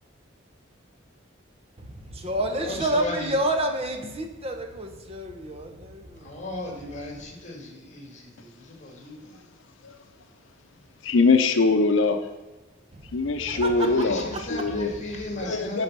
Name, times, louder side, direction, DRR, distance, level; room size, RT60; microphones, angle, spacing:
voice 1, 1.9-6.4 12.9-14.1 14.3-14.4, right 1 dB, 30° right, 4 dB, 0.9 m, -29 dB
voice 2, 2.6-3.4 6.2-9.4 13.5-15.8, left 1 dB, 40° left, 1 dB, 2.1 m, -36 dB
voice 3, 11.0-12.2 13.1-14.9 15.4-15.8, left 3 dB, 80° left, 7 dB, 0.6 m, -22 dB
10.5 x 4.1 x 6.1 m, 1.2 s
head